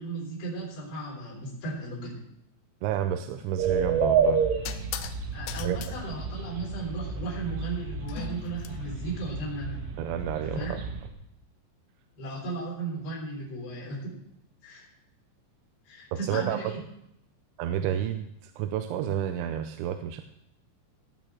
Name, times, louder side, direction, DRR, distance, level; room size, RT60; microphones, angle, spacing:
voice 1, 0.0-2.2 5.3-9.8 10.4-10.8 12.2-14.2 14.6-14.9 15.8-16.8, right 3 dB, 60° left, -6 dB, 6.4 m, -35 dB
voice 2, 2.8-4.4 5.6-5.8 10.0-10.8 16.3-16.6 17.6-20.2, right 10 dB, 90° right, 7 dB, 3.0 m, -30 dB
sound 1, 3.4-3.6 4.6-5.2 5.5-5.9 8.1-8.7, left 11 dB, 80° left, 2.5 m, -38 dB
sound 2, 3.6-11.1, right 5 dB, 70° right, 3.5 m, -30 dB
18.0 x 6.2 x 6.2 m, 0.78 s
omnidirectional pair, 5.4 m